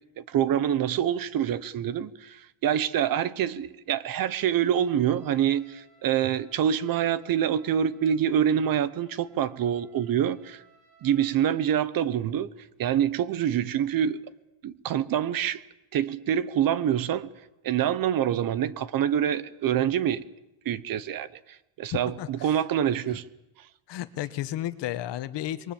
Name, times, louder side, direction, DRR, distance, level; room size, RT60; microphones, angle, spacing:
voice 1, 0.2-10.6 11.0-12.5 12.8-14.2 14.6-15.6 15.9-17.3 17.6-20.2 20.6-21.3 21.8-23.2, right 9 dB, 45° right, 1.0 m, -26 dB
Trumpet, 4.2-11.9, right 4 dB, 25° right, 8.0 m, -60 dB
voice 2, 22.1-22.6 23.9-25.7, left 13 dB, 55° left, 1.4 m, -33 dB
27.0 x 22.5 x 7.3 m
cardioid pair, 160°, 49 cm